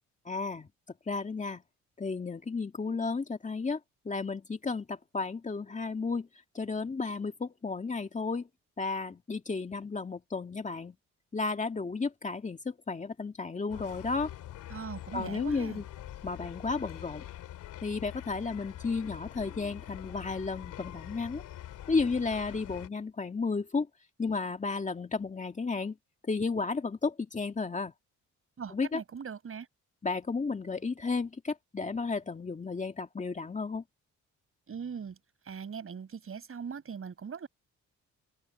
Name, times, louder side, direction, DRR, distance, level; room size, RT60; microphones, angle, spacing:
voice 1, 0.3-0.7 1.1-1.6 2.0-3.8 4.1-6.3 6.5-8.5 8.8-11.0 11.3-14.3 15.1-15.8 16.2-17.2 17.8-21.4 21.9-23.9 24.2-26.0 26.3-27.9 28.7-29.0 30.0-33.8, left 4 dB, 25° left, 2.0 m, -33 dB
sound 1, 13.7-22.9, left 13 dB, 80° left, 3.0 m, -44 dB
voice 2, 14.7-15.8 28.6-29.7 34.7-35.2 35.4-37.5, right 6 dB, 45° right, 6.5 m, -40 dB
cardioid pair, 90°, 30 cm